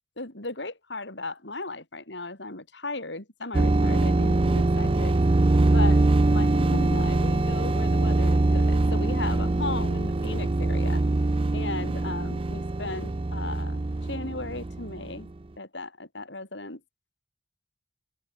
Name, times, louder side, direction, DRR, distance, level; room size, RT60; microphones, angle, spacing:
voice 1, 0.2-5.2 5.6-11.0 11.5-15.3 15.6-16.8, left 2 dB, 70° left, 5.1 m, -36 dB
sound 1, 3.5-15.2, right 2 dB, 30° right, 0.5 m, -23 dB
open air
head